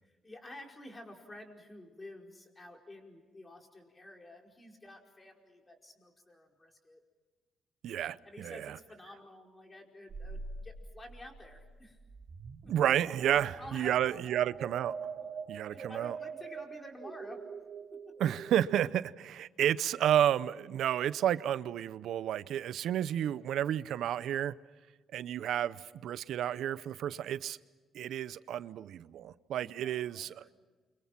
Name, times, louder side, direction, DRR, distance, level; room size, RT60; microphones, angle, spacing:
voice 1, 0.0-7.0 8.2-12.0 12.6-12.7 13.3-14.3 15.7-17.4 29.5-30.5, left 1 dB, 20° left, 5.0 m, -51 dB
voice 2, 7.8-8.8 12.7-14.9 15.5-16.2 18.2-24.5 25.1-27.6 27.9-30.5, right 10 dB, 75° right, 0.7 m, -31 dB
sound 1, 10.1-18.8, right 5 dB, 40° right, 4.0 m, -44 dB
29.5 x 25.5 x 6.0 m
cardioid pair, 90°, 0 cm